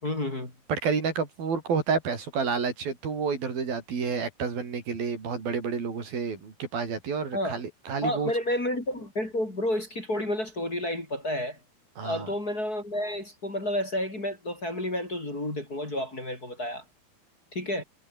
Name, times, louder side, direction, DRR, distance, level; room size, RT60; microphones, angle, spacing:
voice 1, 0.0-0.5 7.3-7.6 8.0-11.6 12.0-16.8 17.5-17.8, left 1 dB, 20° left, 4.9 m, -30 dB
voice 2, 0.7-8.3 12.0-12.3, right 5 dB, 65° right, 6.4 m, -29 dB
omnidirectional pair, 4.6 m